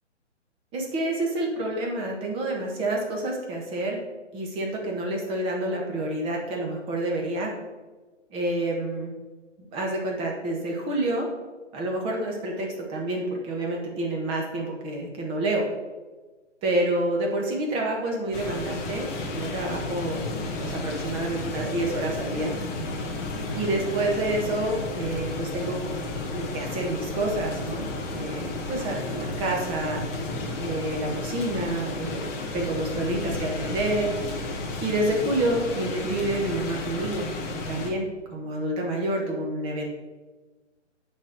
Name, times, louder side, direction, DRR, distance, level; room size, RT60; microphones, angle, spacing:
voice 1, 0.7-4.0 4.3-7.5 8.3-9.1 9.7-11.3 11.7-15.6 16.6-20.2 20.6-22.6 23.5-25.8 26.3-30.0 30.6-32.2 32.5-34.1 34.8-37.3 37.7-39.8, right 1 dB, 15° right, 0 dB, 1.4 m, -28 dB
sound 1, 18.3-37.9, left 2 dB, 15° left, 0.6 m, -32 dB
9.3 x 4.5 x 6.4 m, 1.3 s
figure-of-eight pair, 140°, 36 cm